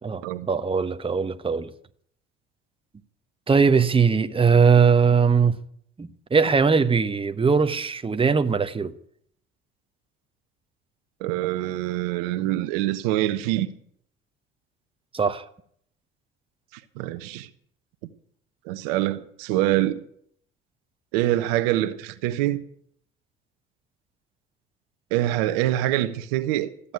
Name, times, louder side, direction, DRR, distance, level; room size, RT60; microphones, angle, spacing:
voice 1, 0.0-1.7 3.5-5.6 6.0-8.9 15.1-15.4, right 5 dB, 20° right, 1.0 m, -20 dB
voice 2, 11.2-13.7 17.0-17.5 18.7-20.0 21.1-22.6 25.1-26.9, right 14 dB, 75° right, 1.0 m, -25 dB
14.0 x 8.4 x 9.5 m
hypercardioid pair, 65°, 29 cm